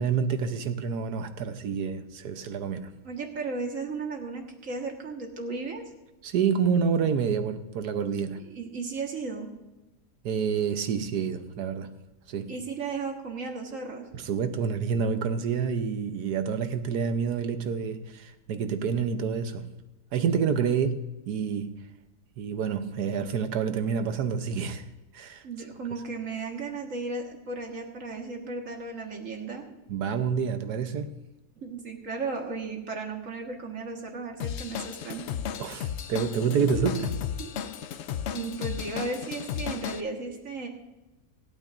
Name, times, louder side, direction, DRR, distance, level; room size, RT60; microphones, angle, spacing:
voice 1, 0.0-2.9 6.2-8.4 10.2-11.9 12.3-12.5 14.1-19.7 20.1-21.8 22.4-24.8 25.1-25.5 29.9-31.1 35.6-37.1, right 6 dB, 75° right, 1.4 m, -28 dB
voice 2, 3.0-5.8 8.4-9.5 12.5-14.1 25.4-29.6 31.6-35.3 36.8-37.0 37.4-37.5 38.3-40.7, right 4 dB, 50° right, 1.9 m, -35 dB
Drum kit / Drum, 34.4-40.0, left 8 dB, 75° left, 0.6 m, -34 dB
25.0 x 9.1 x 2.6 m
omnidirectional pair, 1.7 m